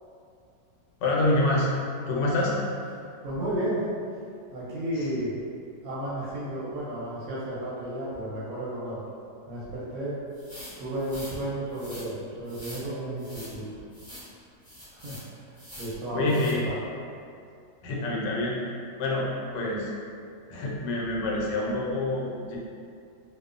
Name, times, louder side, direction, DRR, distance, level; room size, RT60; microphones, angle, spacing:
voice 1, 1.0-1.7 2.1-2.6 16.1-16.6 17.8-18.6 19.0-19.3 19.5-19.9 20.5-22.6, left 2 dB, 80° left, -4 dB, 1.2 m, -26 dB
voice 2, 3.2-3.9 4.5-5.3 5.8-9.0 9.5-10.1 10.8-13.7 14.9-16.7, right 1 dB, 65° right, -8 dB, 0.9 m, -33 dB
sound 1, 10.3-11.3 11.7-12.0 12.5-12.8 13.2-13.5 13.9-14.3 14.6-15.2 15.5-15.9 16.3-16.5, equal, 5° right, 0.3 m, -44 dB
2.9 x 2.1 x 2.4 m, 2.4 s
omnidirectional pair, 1.9 m